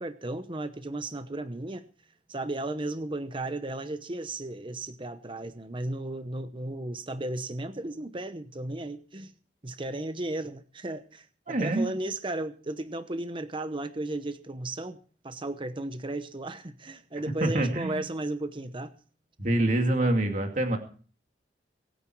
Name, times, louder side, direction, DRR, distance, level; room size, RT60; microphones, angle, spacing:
voice 1, 0.0-1.9 2.3-9.3 9.6-18.9, right 2 dB, 30° right, 10 dB, 0.9 m, -35 dB
voice 2, 11.5-11.9 17.4-18.0 19.4-20.8, right 1 dB, 45° right, 3 dB, 2.4 m, -25 dB
23.0 x 9.6 x 4.6 m, 0.41 s
head